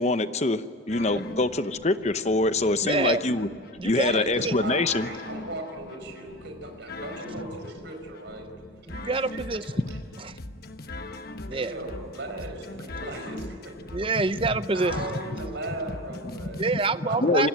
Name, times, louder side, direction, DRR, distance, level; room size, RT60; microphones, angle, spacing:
voice 1, 0.0-3.5 3.8-5.1 9.8-9.9 16.3-16.5 17.2-17.5, left 2 dB, 35° left, 11 dB, 0.9 m, -24 dB
sound 1, 0.9-16.9, left 2 dB, 50° left, 1.2 m, -41 dB
voice 2, 2.8-3.2 3.8-4.2 4.4-4.6 8.9-9.8 10.2-10.4 11.5-11.7 13.9-15.2 16.6-17.5, right 3 dB, 25° right, 14 dB, 0.6 m, -27 dB
voice 3, 4.0-8.5 9.3-9.4 11.5-13.8 14.7-16.7 17.0-17.5, right 2 dB, 60° right, 4 dB, 4.9 m, -37 dB
27.5 x 20.5 x 9.4 m, 2.3 s
head